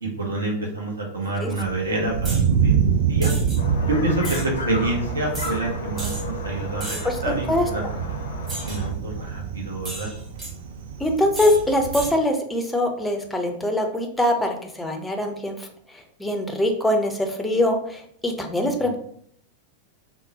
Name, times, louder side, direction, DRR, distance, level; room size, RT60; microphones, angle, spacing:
voice 1, 0.0-2.7 3.1-3.3 3.9-7.8 8.6-10.1 18.8-18.9, right 2 dB, 75° right, -1 dB, 0.7 m, -27 dB
Thunder, 1.5-12.1, right 7 dB, 60° right, 0.3 m, -26 dB
sound 1, 2.2-2.5 3.2-3.6 4.2-4.5 5.3-5.5 6.0-6.2 6.8-7.2 8.5-8.8 9.8-10.5 11.3-11.6 11.9-12.1, right 2 dB, 20° right, 1.1 m, -34 dB
sound 2, 3.6-8.9, left 4 dB, 70° left, 0.5 m, -35 dB
voice 2, 7.0-7.9 11.0-15.7 15.9-19.0, left 1 dB, 10° left, 4 dB, 0.5 m, -23 dB
3.6 x 2.0 x 2.7 m, 0.64 s
figure-of-eight pair, 90°, 0 cm